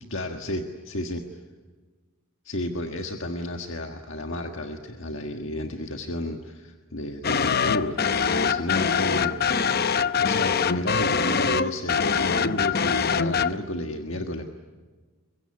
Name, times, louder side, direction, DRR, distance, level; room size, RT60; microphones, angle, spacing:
voice 1, 0.1-1.2 2.4-8.0 8.3-9.5 10.2-14.4, left 1 dB, 65° left, 4 dB, 1.6 m, -32 dB
sound 1, 7.2-13.5, left 6 dB, 50° left, 0.8 m, -23 dB
23.5 x 22.5 x 9.7 m, 1.4 s
head